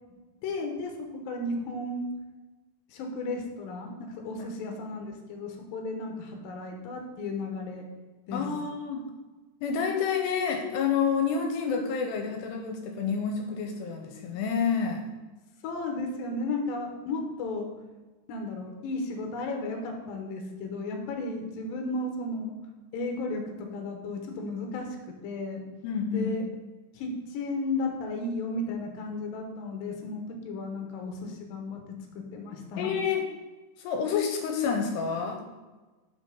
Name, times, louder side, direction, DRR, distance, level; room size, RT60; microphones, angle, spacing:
voice 1, 0.4-2.1 2.9-7.9 8.3-8.4 15.6-17.7 18.3-22.5 22.9-24.9 25.2-25.6 26.1-26.4 26.9-31.8 32.2-32.9, left 2 dB, 70° left, 2 dB, 2.4 m, -34 dB
voice 2, 8.3-9.1 9.6-15.0 25.8-26.3 32.8-33.3 33.8-35.4, left 6 dB, 85° left, 3 dB, 2.7 m, -28 dB
5.9 x 5.3 x 5.1 m, 1.2 s
omnidirectional pair, 4.9 m